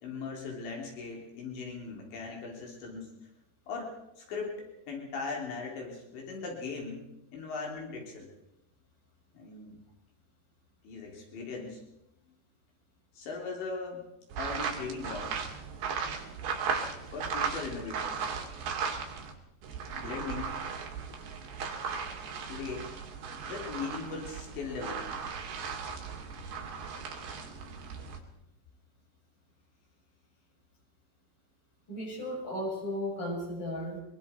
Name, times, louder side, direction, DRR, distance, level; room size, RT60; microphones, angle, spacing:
voice 1, 0.0-3.1 3.7-8.3 9.3-9.8 10.8-11.8 13.1-14.1 14.4-15.3 17.1-18.3 19.9-20.6 22.5-22.9 23.5-25.3, left 4 dB, 80° left, 0 dB, 5.9 m, -39 dB
sound 1, 14.3-19.3 19.6-28.2, right 6 dB, 65° right, 4.5 m, -37 dB
voice 2, 31.9-34.0, left 1 dB, 25° left, -1 dB, 7.5 m, -35 dB
24.5 x 23.5 x 4.6 m, 0.87 s
omnidirectional pair, 5.1 m